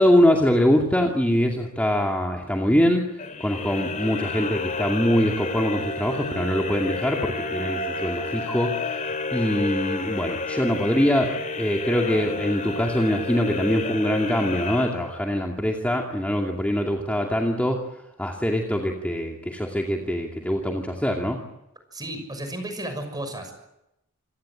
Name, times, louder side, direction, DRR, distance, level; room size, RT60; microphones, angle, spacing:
voice 1, 0.0-3.1 3.4-17.8 18.2-21.4, equal, 5° left, 0 dB, 2.5 m, -23 dB
sound 1, 3.2-15.4, left 3 dB, 35° left, 2.9 m, -30 dB
voice 2, 21.9-23.5, right 1 dB, 20° right, 7 dB, 6.4 m, -33 dB
27.5 x 17.5 x 9.1 m, 0.87 s
head